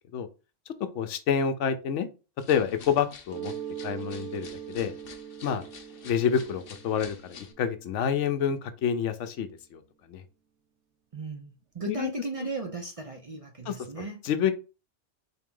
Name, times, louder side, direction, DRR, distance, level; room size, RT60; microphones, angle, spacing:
voice 1, 0.9-2.1 2.5-3.5 3.8-4.9 5.4-5.6 6.0-9.8 10.1-10.2 11.9-12.1 13.7-13.8 14.2-14.5, left 7 dB, 85° left, 0.9 m, -28 dB
sound 1, 2.4-7.5, left 6 dB, 55° left, 0.8 m, -49 dB
Mallet percussion, 3.3-8.9, right 9 dB, 75° right, 0.9 m, -42 dB
voice 2, 11.1-14.2, right 3 dB, 40° right, 0.5 m, -36 dB
4.0 x 2.9 x 3.7 m
omnidirectional pair, 1.2 m